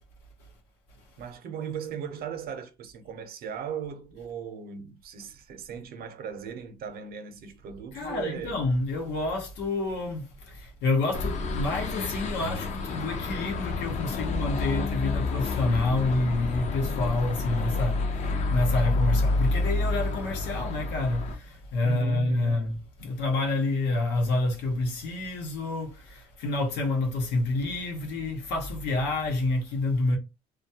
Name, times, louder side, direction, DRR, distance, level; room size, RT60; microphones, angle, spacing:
voice 1, 1.2-8.6 21.8-22.7, right 7 dB, 65° right, 0.6 m, -37 dB
voice 2, 7.9-30.2, left 2 dB, 90° left, 0.9 m, -28 dB
sound 1, 11.1-21.4, left 3 dB, 45° left, 0.5 m, -29 dB
2.3 x 2.2 x 2.7 m
cardioid pair, 110°, 17 cm